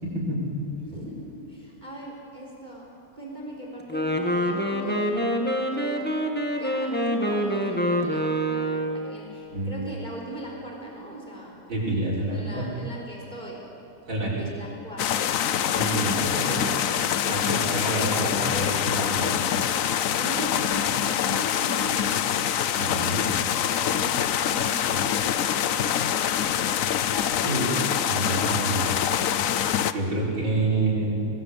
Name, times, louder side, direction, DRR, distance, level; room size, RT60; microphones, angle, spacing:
voice 1, 0.0-0.9 9.5-9.8 11.7-12.6 14.1-14.5 15.7-16.7 17.3-19.7 22.7-23.2 27.4-28.9 29.9-31.2, right 2 dB, 65° right, -7 dB, 6.6 m, -28 dB
voice 2, 0.8-2.9 3.1-6.2 6.5-11.6 12.3-13.7 14.4-15.4 16.2-16.8 18.2-18.4 20.1-22.3 22.7-22.8 23.6-24.1 24.4-26.6, right 1 dB, 20° right, -2 dB, 4.0 m, -40 dB
Wind instrument woodwind instrument, 3.8-9.1, equal, 5° left, 1.6 m, -26 dB
sound 1, 15.0-29.9, left 9 dB, 75° left, 0.7 m, -25 dB
25.0 x 19.5 x 8.5 m, 2.7 s
omnidirectional pair, 2.3 m